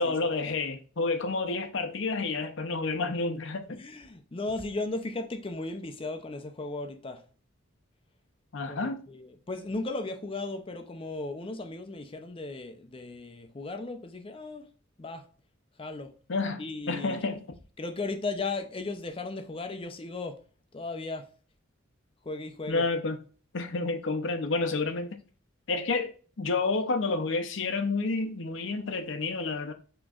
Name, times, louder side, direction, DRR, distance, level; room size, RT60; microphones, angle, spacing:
voice 1, 0.0-3.8 8.5-9.1 16.3-17.4 22.7-23.2 23.5-25.2 25.7-29.7, left 3 dB, 65° left, 0.7 m, -30 dB
voice 2, 3.7-7.2 8.6-14.7 15.0-15.3 15.8-16.1 16.6-17.2 17.8-20.4 20.7-21.3 22.2-22.8, left 3 dB, 25° left, 0.5 m, -36 dB
6.1 x 3.1 x 2.4 m
head